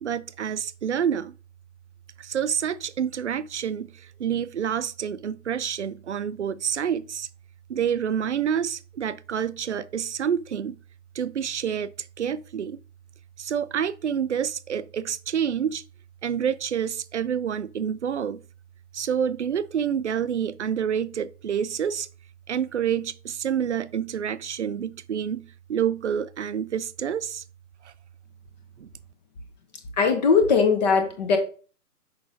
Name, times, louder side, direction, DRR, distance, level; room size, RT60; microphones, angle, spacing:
voice 1, 0.0-1.3 2.2-7.3 7.7-10.8 11.1-12.8 13.4-15.8 16.2-18.4 18.9-22.1 22.5-27.4 28.8-28.9, right 8 dB, 50° right, 0.6 m, -28 dB
voice 2, 30.0-31.4, left 5 dB, 30° left, 1.2 m, -20 dB
6.4 x 4.7 x 5.1 m
figure-of-eight pair, 130°, 46 cm